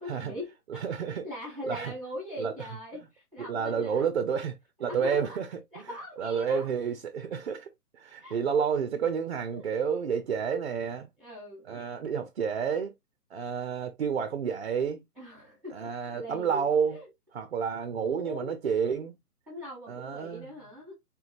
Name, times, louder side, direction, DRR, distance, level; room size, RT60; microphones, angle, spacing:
voice 1, 0.0-0.8 1.2-4.1 4.8-5.4 5.7-6.7 8.2-8.4 9.5-9.6 11.2-11.9 15.2-17.1 18.0-18.5 19.5-20.9, left 1 dB, ahead, 1.0 m, -41 dB
voice 2, 0.7-1.3 1.7-1.9 2.4-2.5 3.4-5.5 5.8-5.9 6.2-11.1 11.7-12.9 13.3-15.0 15.7-17.0 17.3-19.2 19.9-20.5, right 6 dB, 45° right, 0.4 m, -30 dB
3.5 x 3.0 x 2.4 m
figure-of-eight pair, 135°, 47 cm